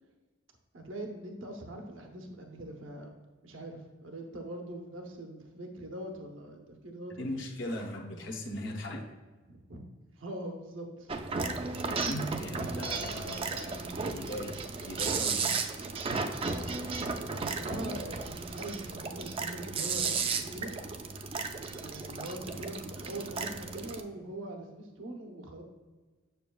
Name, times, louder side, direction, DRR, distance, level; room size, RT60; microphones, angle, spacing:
voice 1, 0.7-3.1 3.4-7.4 9.5-9.8 10.2-11.1 17.2-20.7 21.7-25.6, right 1 dB, 80° right, 3 dB, 0.8 m, -42 dB
voice 2, 7.1-9.1 11.9-14.5 14.8-15.6, left 1 dB, 65° left, 1 dB, 0.8 m, -38 dB
sound 1, 11.1-24.0, right 4 dB, 30° right, 0.4 m, -34 dB
6.9 x 6.6 x 2.3 m, 1.3 s
head